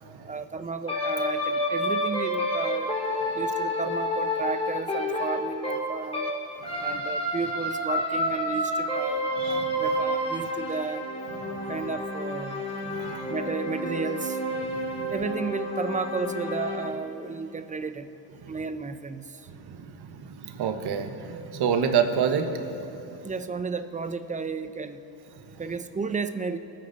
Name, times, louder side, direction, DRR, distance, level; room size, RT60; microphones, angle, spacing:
voice 1, 0.3-3.0 3.3-6.3 6.8-11.0 11.7-12.6 13.3-14.4 15.1-18.1 18.5-19.4 23.2-25.0 25.6-26.6, right 4 dB, 15° right, 10 dB, 0.7 m, -33 dB
sound 1, 0.9-6.4 6.6-16.9, left 1 dB, 15° left, 2.6 m, -29 dB
voice 2, 6.6-7.0 9.4-9.7 10.4-10.5 11.4-11.5 12.8-13.3 14.7-15.1 18.4-18.6 19.5-22.8 23.1-23.2, right 7 dB, 60° right, 6 dB, 1.5 m, -29 dB
23.0 x 9.7 x 4.2 m, 2.8 s
cardioid pair, 95°, 44 cm